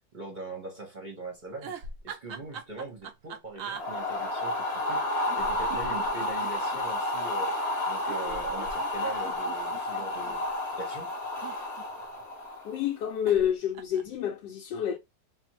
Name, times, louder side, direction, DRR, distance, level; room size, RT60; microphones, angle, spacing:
voice 1, 0.1-1.8 2.0-7.6 7.9-10.5 10.8-11.1, right 2 dB, 40° right, 0.7 m, -41 dB
sound 1, 1.6-3.8 5.3-6.8 8.1-10.4 11.2-12.2 13.3-13.5 13.7-14.2, right 5 dB, 75° right, 0.7 m, -42 dB
sound 2, 3.7-12.8, left 1 dB, 40° left, 1.1 m, -31 dB
voice 2, 12.6-15.0, left 9 dB, 75° left, 1.2 m, -28 dB
3.3 x 2.0 x 2.9 m
omnidirectional pair, 2.0 m